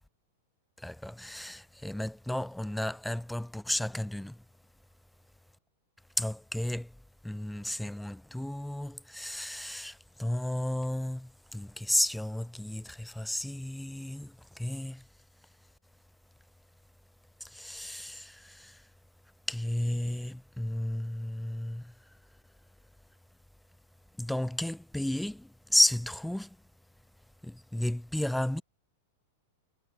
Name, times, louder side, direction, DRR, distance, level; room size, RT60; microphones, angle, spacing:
voice 1, 0.8-4.4 6.2-7.0 7.2-15.1 17.4-18.9 19.5-21.9 24.2-26.6 27.4-28.6, left 1 dB, 5° left, 1.4 m, -33 dB
hypercardioid pair, 100°, 0 cm